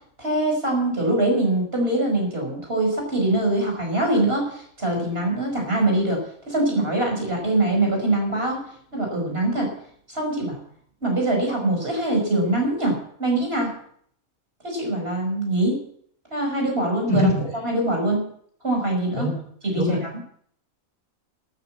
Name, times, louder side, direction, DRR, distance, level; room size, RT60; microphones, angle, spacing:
voice 1, 0.2-9.7 10.1-10.6 11.0-13.7 14.6-15.8 16.3-17.3 17.6-18.3 18.6-19.3 19.6-20.2, right 1 dB, 45° right, 1 dB, 5.2 m, -23 dB
voice 2, 17.1-17.4 19.1-19.4 19.8-20.0, equal, 30° left, 2 dB, 3.2 m, -22 dB
13.0 x 9.6 x 7.4 m, 0.64 s
omnidirectional pair, 1.5 m